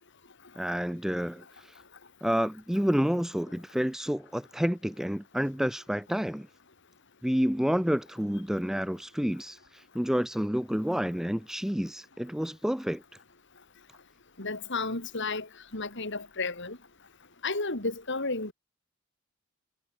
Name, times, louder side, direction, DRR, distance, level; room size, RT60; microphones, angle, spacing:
voice 1, 0.6-1.4 2.2-6.5 7.2-9.6 9.9-13.0, equal, ahead, 0.6 m, -29 dB
voice 2, 14.4-16.8 17.4-18.5, left 3 dB, 60° left, 4.3 m, -32 dB
head